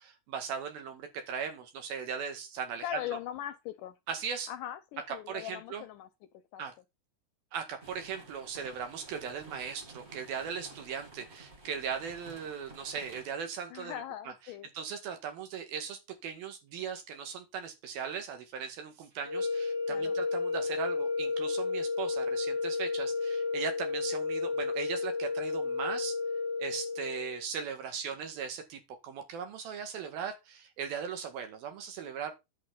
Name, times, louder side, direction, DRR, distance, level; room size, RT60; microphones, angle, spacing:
voice 1, 0.0-3.0 4.1-4.5 5.3-5.8 6.6-6.7 7.5-14.3 14.7-26.2 26.6-32.3, right 7 dB, 80° right, 3.9 m, -38 dB
voice 2, 2.8-4.0 4.5-6.1 6.5-6.6 13.7-14.7 19.9-20.2, left 12 dB, 80° left, 2.0 m, -40 dB
sound 1, 7.8-13.3, right 3 dB, 35° right, 1.1 m, -52 dB
sound 2, 19.2-27.4, left 4 dB, 55° right, 4.5 m, -32 dB
10.5 x 7.1 x 3.9 m
omnidirectional pair, 4.2 m